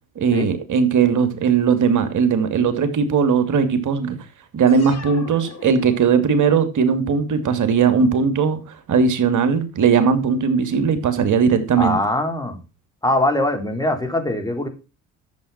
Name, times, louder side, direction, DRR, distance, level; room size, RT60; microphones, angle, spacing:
voice 1, 0.2-4.2 4.5-12.0, right 6 dB, 50° right, 2.9 m, -18 dB
sound 1, 4.7-6.5, left 5 dB, 40° left, 3.7 m, -40 dB
voice 2, 11.8-12.6 13.0-14.7, left 1 dB, 10° left, 4.3 m, -22 dB
12.5 x 7.8 x 5.9 m
hypercardioid pair, 60°, 40 cm